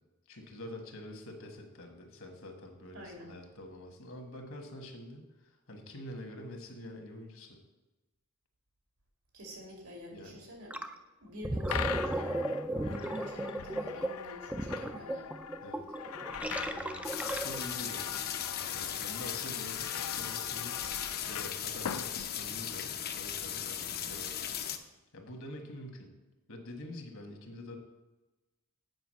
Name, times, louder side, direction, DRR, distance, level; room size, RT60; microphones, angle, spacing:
voice 1, 0.3-7.6 10.1-10.4 15.6-15.9 16.7-18.3 18.7-20.9 21.3-24.4 25.1-26.1 26.5-27.8, left 1 dB, 65° left, 4 dB, 1.4 m, -46 dB
voice 2, 2.9-3.4 9.3-10.8 11.2-15.3, left 1 dB, 85° right, 0 dB, 2.5 m, -47 dB
Gurgling, 10.7-10.9 11.3-17.8, right 1 dB, 5° right, 0.3 m, -35 dB
sound 1, 11.7-22.9, left 8 dB, 90° left, 0.4 m, -42 dB
sound 2, 17.0-24.8, left 9 dB, 45° left, 0.6 m, -37 dB
8.0 x 4.9 x 6.3 m, 1.1 s
head